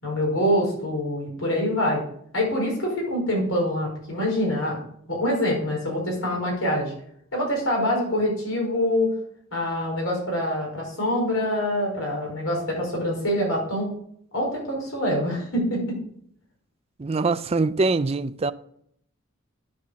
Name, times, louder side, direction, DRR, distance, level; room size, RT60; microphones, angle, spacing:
voice 1, 0.0-2.0 2.3-4.8 5.1-6.9 7.3-9.1 9.5-13.9 14.3-16.0, left 1 dB, 75° left, 4.9 m, -25 dB
voice 2, 17.0-18.5, right 3 dB, 30° right, 0.4 m, -23 dB
9.6 x 5.8 x 6.4 m
head